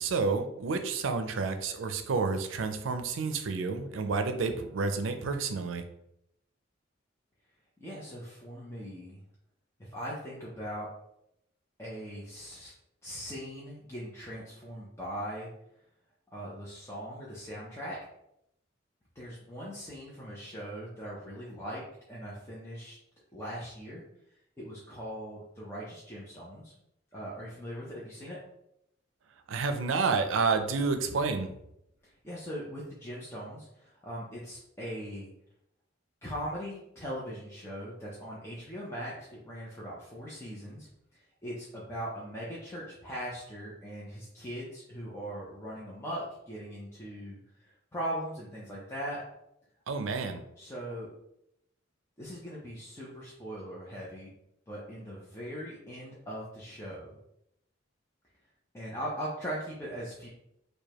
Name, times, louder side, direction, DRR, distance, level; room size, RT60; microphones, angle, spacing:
voice 1, 0.0-5.8 29.5-31.5 49.9-50.4, right 4 dB, 85° right, 7 dB, 0.5 m, -30 dB
voice 2, 7.8-9.2 9.8-10.9 11.8-12.7 13.0-15.5 16.3-18.0 19.2-21.8 22.1-23.0 23.3-24.0 24.6-26.7 27.1-28.4 32.0-35.3 36.2-49.2 50.6-51.1 52.2-54.3 54.7-57.2 58.7-60.3, equal, 15° left, -6 dB, 0.6 m, -40 dB
4.8 x 2.3 x 2.9 m, 0.79 s
head